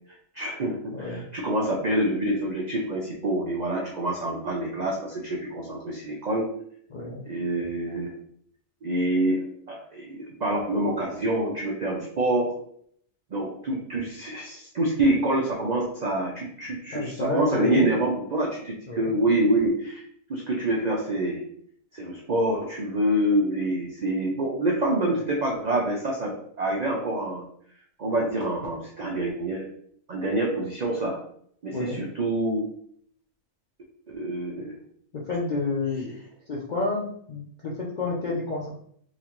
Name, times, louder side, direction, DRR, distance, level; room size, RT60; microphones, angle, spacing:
voice 1, 0.3-6.5 7.3-8.1 8.8-12.5 13.3-20.0 20.3-21.4 21.9-27.4 28.0-29.6 30.1-31.2 31.6-32.6 34.1-34.7, right 1 dB, 75° right, -2 dB, 0.4 m, -26 dB
voice 2, 0.9-1.2 6.9-7.2 16.9-17.9 18.9-19.2 31.7-32.0 35.3-36.2 36.5-38.7, left 2 dB, 60° left, -3 dB, 0.4 m, -29 dB
3.9 x 2.4 x 2.9 m, 0.65 s
omnidirectional pair, 1.5 m